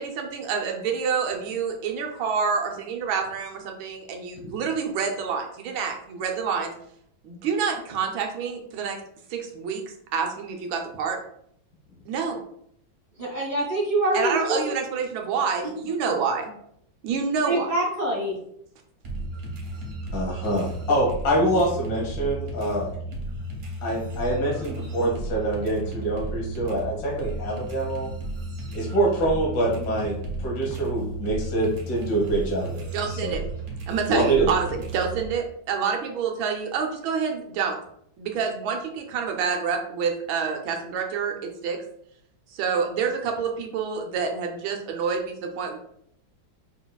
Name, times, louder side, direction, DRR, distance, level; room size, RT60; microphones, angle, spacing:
voice 1, 0.0-6.7 7.2-9.0 9.3-9.8 10.1-11.2 12.1-12.4 14.1-16.5 17.0-17.7 32.9-33.4 33.9-37.8 38.2-41.8 42.5-45.8, right 6 dB, 85° right, 3 dB, 1.5 m, -27 dB
voice 2, 13.2-14.6 15.9-16.0 17.4-18.4, right 1 dB, 30° left, -5 dB, 0.9 m, -25 dB
sound 1, 19.0-35.3, right 2 dB, 55° right, 1.3 m, -34 dB
voice 3, 20.1-22.9 23.8-28.1 28.7-33.4 34.1-34.5, right 1 dB, 70° left, -3 dB, 2.0 m, -25 dB
5.5 x 4.0 x 2.3 m, 0.70 s
omnidirectional pair, 2.1 m